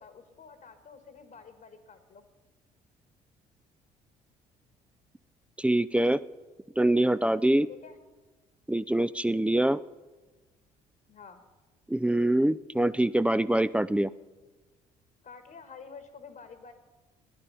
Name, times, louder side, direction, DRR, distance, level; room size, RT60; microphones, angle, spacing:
voice 1, 0.0-2.3 7.7-8.0 11.1-11.4 15.2-16.7, left 5 dB, 50° left, 7 dB, 1.6 m, -49 dB
voice 2, 5.6-6.2 6.8-7.7 8.7-9.8 11.9-14.1, right 1 dB, 5° right, 15 dB, 0.4 m, -24 dB
16.5 x 11.0 x 5.6 m, 1.2 s
hypercardioid pair, 55°, 19 cm